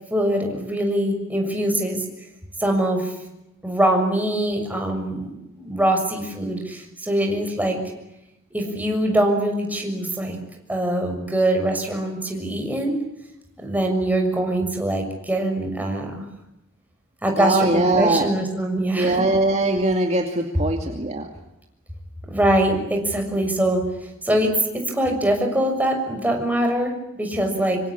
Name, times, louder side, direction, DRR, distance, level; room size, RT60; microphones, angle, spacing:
voice 1, 0.1-2.0 2.6-3.1 3.6-7.8 8.5-10.4 10.7-13.0 13.6-16.2 17.2-19.2 22.3-23.8 24.2-27.8, right 1 dB, 10° right, 2 dB, 6.7 m, -23 dB
voice 2, 17.4-18.3 19.0-21.3, right 2 dB, 30° right, 3 dB, 2.4 m, -21 dB
26.0 x 25.5 x 8.7 m, 0.89 s
head